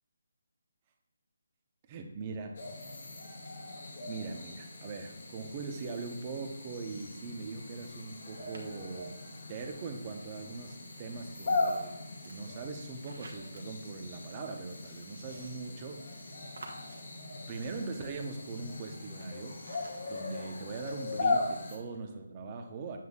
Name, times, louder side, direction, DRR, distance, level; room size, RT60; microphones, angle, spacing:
voice 1, 1.9-2.6 4.0-9.2 9.5-16.2 17.5-19.6 20.1-23.0, right 4 dB, 30° right, 4 dB, 0.8 m, -41 dB
sound 1, 2.5-21.8, left 3 dB, 60° left, 1.8 m, -39 dB
sound 2, 8.5-9.2 10.2-20.2, right 2 dB, 75° right, 1.3 m, -56 dB
7.9 x 7.5 x 2.3 m, 0.93 s
figure-of-eight pair, 160°, 0 cm